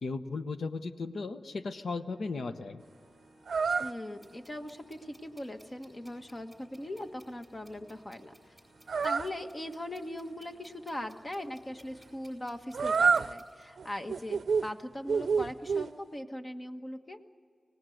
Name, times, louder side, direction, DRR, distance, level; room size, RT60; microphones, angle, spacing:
voice 1, 0.0-2.8, left 3 dB, 80° left, 9 dB, 1.0 m, -36 dB
Organ, 2.1-12.9, equal, 55° left, 7.7 m, -62 dB
sound 1, 3.5-3.9 8.9-9.3 12.7-13.3 13.8-14.7 15.1-15.9, right 5 dB, 85° right, 0.5 m, -27 dB
voice 2, 3.8-8.5 9.0-17.2, left 1 dB, 35° left, 6 dB, 1.4 m, -40 dB
sound 2, 4.2-13.6, equal, ahead, 7.9 m, -62 dB
25.0 x 18.5 x 7.9 m, 2.1 s
cardioid pair, 65°, 0 cm